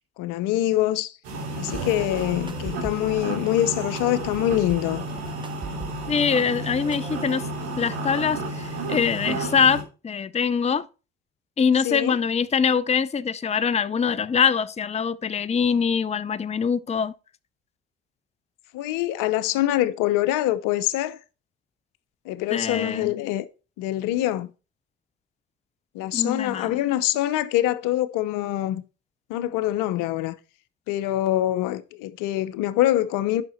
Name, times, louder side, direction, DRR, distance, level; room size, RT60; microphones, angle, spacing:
voice 1, 0.2-1.1 1.6-5.0 11.8-12.2 18.7-21.2 22.3-23.4 23.8-24.5 25.9-28.8 29.3-30.3 30.9-33.4, left 14 dB, 75° left, 0.8 m, -24 dB
sound 1, 1.2-9.8, right 2 dB, 80° right, 3.1 m, -32 dB
sound 2, 1.7-3.3 4.0-6.2 6.5-7.5, right 3 dB, 15° right, 1.1 m, -40 dB
voice 2, 6.1-7.5 7.8-10.9 11.6-17.1 22.5-23.1 26.1-26.8, left 6 dB, 20° left, 0.6 m, -23 dB
10.5 x 5.9 x 4.3 m
hypercardioid pair, 55°, 32 cm